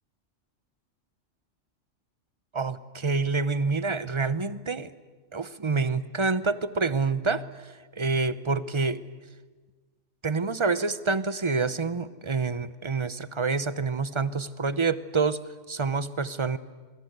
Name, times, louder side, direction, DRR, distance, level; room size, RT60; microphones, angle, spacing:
voice 1, 2.5-4.9 5.3-7.4 8.0-9.0 10.2-15.4 15.7-16.6, right 4 dB, 30° right, 15 dB, 0.7 m, -27 dB
27.5 x 23.0 x 8.1 m, 1.4 s
omnidirectional pair, 1.3 m